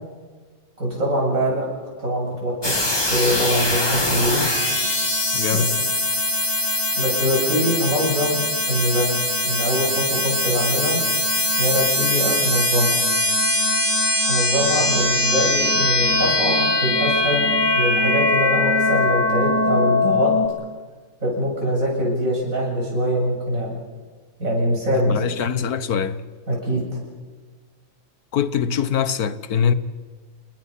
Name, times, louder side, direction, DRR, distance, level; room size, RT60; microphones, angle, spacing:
voice 1, 0.8-1.7 2.0-2.8 3.1-4.4 5.5-5.6 7.0-9.2 9.4-11.0 11.6-13.0 14.2-17.5 17.7-20.3 21.2-23.7 24.4-25.2 26.5-26.8, equal, 65° right, 8.5 m, -23 dB
sound 1, 2.6-20.5, left 1 dB, 15° left, 2.3 m, -21 dB
voice 2, 5.3-5.8 25.0-26.2 28.3-29.7, left 7 dB, 85° left, 1.6 m, -23 dB
29.5 x 20.5 x 5.6 m
omnidirectional pair, 1.6 m